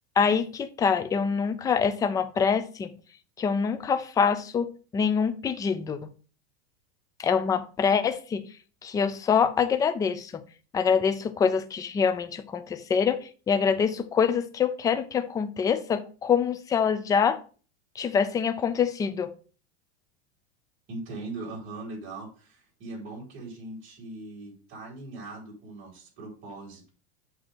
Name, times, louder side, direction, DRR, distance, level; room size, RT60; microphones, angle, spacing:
voice 1, 0.2-2.9 3.4-6.0 7.2-8.4 8.8-10.4 10.7-17.4 18.0-19.3, left 6 dB, 10° left, 0.4 m, -25 dB
voice 2, 20.9-26.9, right 2 dB, 35° right, 3.9 m, -40 dB
7.8 x 2.8 x 5.8 m
supercardioid pair, 140°, 33 cm